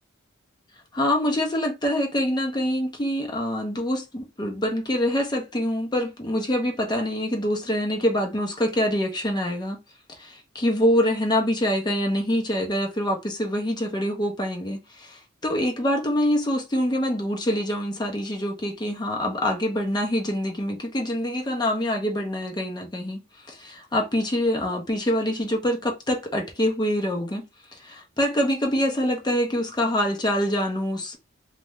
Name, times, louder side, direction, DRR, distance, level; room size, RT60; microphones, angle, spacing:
voice 1, 0.9-9.8 10.2-23.2 23.5-27.5 27.8-31.2, equal, 20° left, 0.6 m, -25 dB
2.5 x 2.2 x 3.0 m
head